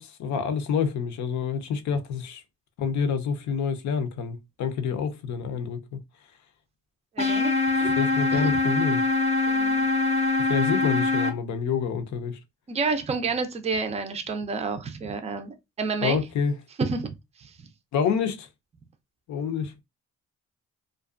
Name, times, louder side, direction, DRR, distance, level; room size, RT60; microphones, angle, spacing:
voice 1, 0.0-2.4 2.8-6.0 7.8-9.0 10.5-12.4 16.0-16.5 17.9-18.5 19.3-19.7, left 6 dB, 70° left, 0.6 m, -28 dB
sound 1, 7.2-11.3, left 3 dB, 20° left, 0.6 m, -23 dB
voice 2, 7.2-7.5 7.8-7.9 8.3-8.5 9.5-9.9 12.7-16.2 16.8-17.1 17.6-17.7, right 4 dB, 20° right, 0.4 m, -29 dB
2.5 x 2.2 x 2.3 m
cardioid pair, 90°, 30 cm